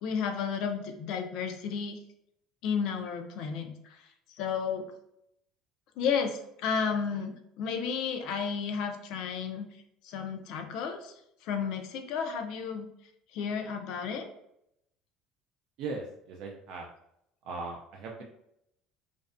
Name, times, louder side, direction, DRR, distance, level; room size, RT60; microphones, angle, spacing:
voice 1, 0.0-2.0 2.6-4.0 4.3-4.9 6.0-9.7 10.0-11.1 11.4-12.9 13.3-14.3, left 6 dB, 65° left, 5 dB, 0.4 m, -32 dB
voice 2, 15.8-16.9 17.4-18.2, right 3 dB, 60° right, 0 dB, 0.3 m, -38 dB
2.5 x 2.1 x 2.4 m, 0.77 s
cardioid pair, 145°, 0 cm